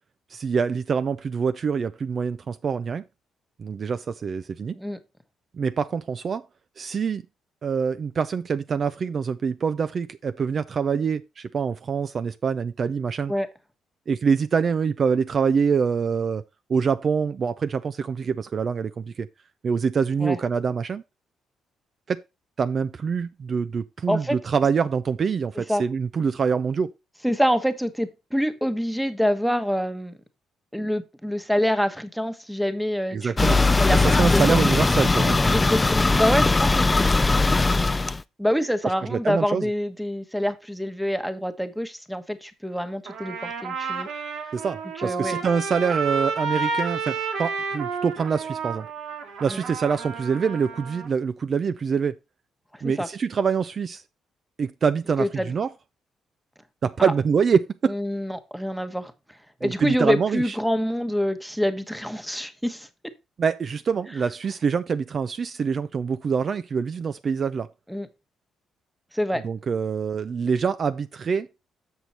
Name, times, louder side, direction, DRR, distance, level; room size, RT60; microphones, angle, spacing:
voice 1, 0.3-3.0 3.6-4.7 5.5-6.4 6.8-7.2 7.6-13.3 14.1-16.4 16.7-19.3 19.6-21.0 22.1-22.2 22.6-26.9 33.1-33.6 33.9-35.6 39.1-39.6 44.5-48.9 49.4-52.1 52.8-54.0 54.6-55.7 56.8-58.0 59.6-60.6 63.4-67.7 69.4-71.5, right 6 dB, 45° right, 0.5 m, -25 dB
voice 2, 24.1-24.4 25.7-25.8 27.2-30.2 30.7-34.0 34.3-34.6 35.5-37.0 38.4-44.1 45.0-45.4 49.5-49.6 52.7-53.1 55.2-55.5 57.0-57.1 57.9-59.1 59.6-62.9 67.9-68.1 69.1-69.4, equal, ahead, 1.2 m, -26 dB
sound 1, 33.4-38.2, left 3 dB, 20° left, 0.4 m, -20 dB
Trumpet, 43.1-51.1, right 4 dB, 75° right, 1.6 m, -31 dB
6.8 x 6.4 x 4.2 m
cardioid pair, 90°, 0 cm